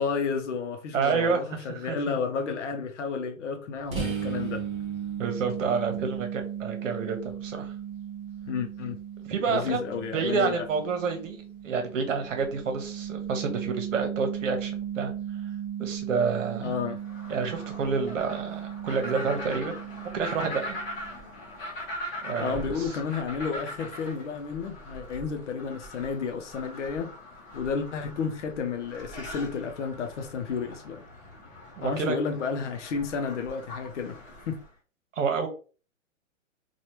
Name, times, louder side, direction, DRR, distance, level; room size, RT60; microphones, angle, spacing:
voice 1, 0.0-4.7 8.5-9.0 9.5-10.6 16.6-17.0 22.4-27.1 27.5-31.0 31.8-34.1 34.5-34.6, left 5 dB, 60° left, 0.8 m, -31 dB
voice 2, 0.9-2.2 5.2-7.7 9.3-9.8 10.1-15.1 15.8-16.7 17.3-19.7 20.1-20.8 22.2-22.9 31.7-32.2 35.1-35.5, right 5 dB, 65° right, 1.1 m, -29 dB
sound 1, 3.9-21.4, right 9 dB, 15° right, 0.6 m, -36 dB
sound 2, 17.0-34.7, left 1 dB, 20° left, 0.9 m, -41 dB
3.2 x 2.4 x 2.9 m
hypercardioid pair, 140°, 40 cm